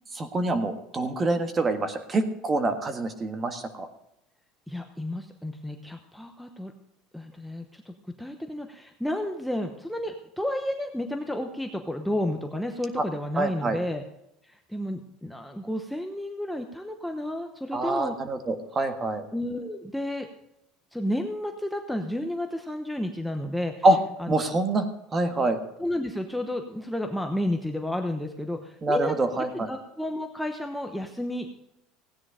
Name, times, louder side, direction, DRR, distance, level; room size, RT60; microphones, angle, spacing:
voice 1, 0.1-3.9 13.4-13.8 17.7-19.2 23.8-24.0 24.3-24.9 25.1-25.6 28.8-29.7, right 2 dB, 20° right, 8 dB, 1.6 m, -25 dB
voice 2, 4.7-6.7 7.1-14.0 14.4-18.2 19.3-20.3 20.9-23.8 24.2-24.3 25.8-31.6, left 1 dB, ahead, 4 dB, 0.9 m, -31 dB
16.5 x 9.7 x 5.0 m, 0.83 s
supercardioid pair, 135°, 0 cm